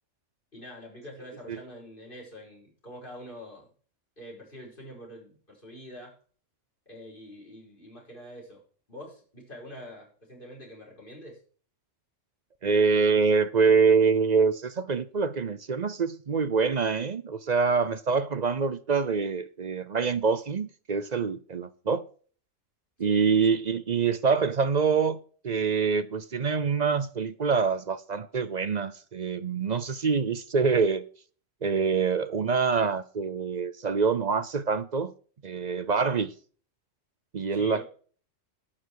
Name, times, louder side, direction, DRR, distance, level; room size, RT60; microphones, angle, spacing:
voice 1, 0.5-3.7 4.2-6.2 6.9-8.6 8.9-11.4 23.0-23.2 37.5-37.8, equal, 40° left, 5.2 m, -45 dB
voice 2, 12.6-22.0 23.0-25.2 25.4-31.1 31.6-35.1 35.4-36.3 37.3-37.8, right 5 dB, 45° right, 0.6 m, -25 dB
11.5 x 8.8 x 4.7 m
omnidirectional pair, 1.3 m